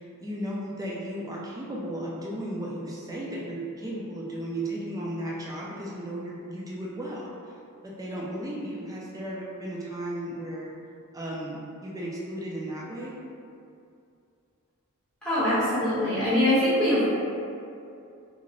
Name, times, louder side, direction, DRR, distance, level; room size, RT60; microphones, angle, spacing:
voice 1, 0.0-7.3 7.8-10.7 11.1-13.2, right 1 dB, 15° right, -5 dB, 0.4 m, -35 dB
voice 2, 15.2-17.0, left 1 dB, 5° left, -13 dB, 1.2 m, -23 dB
3.7 x 2.4 x 3.0 m, 2.5 s
head